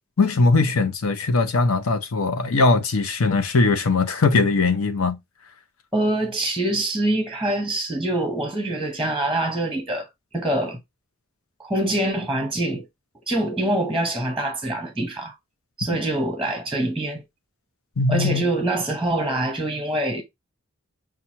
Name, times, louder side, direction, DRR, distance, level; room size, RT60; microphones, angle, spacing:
voice 1, 0.2-5.2 18.0-18.4, left 3 dB, 85° left, 0.7 m, -20 dB
voice 2, 5.9-10.1 10.3-10.8 11.6-12.9 13.3-15.4 15.8-17.2 18.1-20.2, right 1 dB, ahead, 0.8 m, -24 dB
5.9 x 2.4 x 2.8 m
head